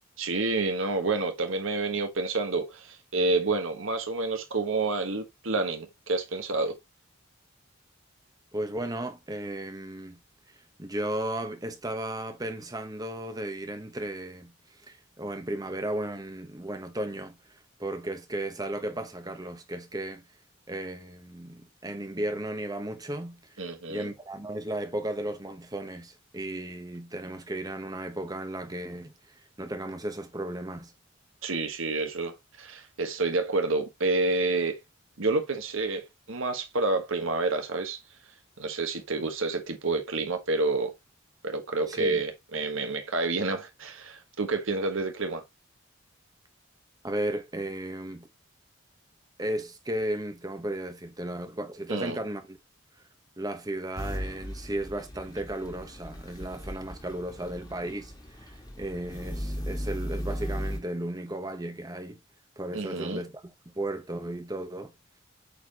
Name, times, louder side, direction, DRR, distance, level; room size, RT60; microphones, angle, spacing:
voice 1, 0.2-6.8 23.6-24.1 31.4-34.8 35.2-38.0 38.6-40.9 41.4-45.4 51.9-52.2 62.7-63.2, right 3 dB, 70° right, 1.3 m, -29 dB
voice 2, 8.5-10.2 10.5-20.3 20.7-30.9 41.9-42.2 47.0-48.3 49.4-52.6 53.4-62.2 62.6-63.4 63.7-64.9, right 1 dB, 20° right, 1.0 m, -35 dB
sound 1, 53.9-60.8, equal, 20° left, 1.9 m, -37 dB
8.2 x 4.6 x 2.9 m
head